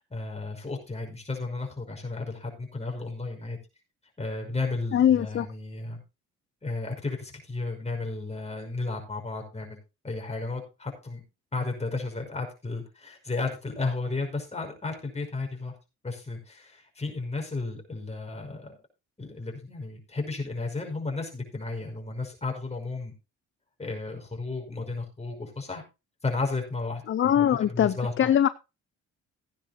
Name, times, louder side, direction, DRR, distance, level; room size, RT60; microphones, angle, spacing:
voice 1, 0.1-3.6 4.2-6.0 6.6-11.2 11.5-15.8 16.0-18.7 19.2-23.1 23.8-25.8 26.2-28.3, left 3 dB, 20° left, 5.6 m, -33 dB
voice 2, 4.9-5.5 27.1-28.5, left 10 dB, 40° left, 0.6 m, -22 dB
16.0 x 10.0 x 2.9 m
cardioid pair, 90°, 30 cm